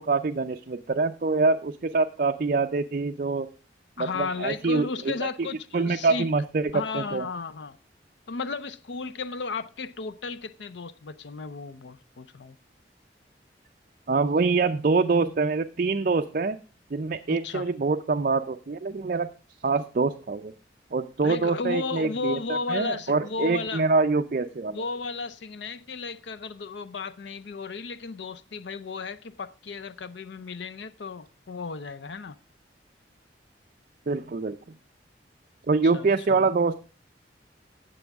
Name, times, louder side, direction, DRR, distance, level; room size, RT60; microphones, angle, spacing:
voice 1, 0.0-3.5 4.0-5.5 5.7-7.3 14.1-16.6 16.9-19.3 19.6-20.5 20.9-24.8 34.1-34.6 35.7-36.8, right 4 dB, 50° right, 0.5 m, -25 dB
voice 2, 4.0-6.3 6.7-7.8 8.3-12.6 17.3-17.7 21.2-23.8 24.7-32.4 35.8-36.5, left 4 dB, 85° left, 0.6 m, -34 dB
17.0 x 7.0 x 3.5 m
head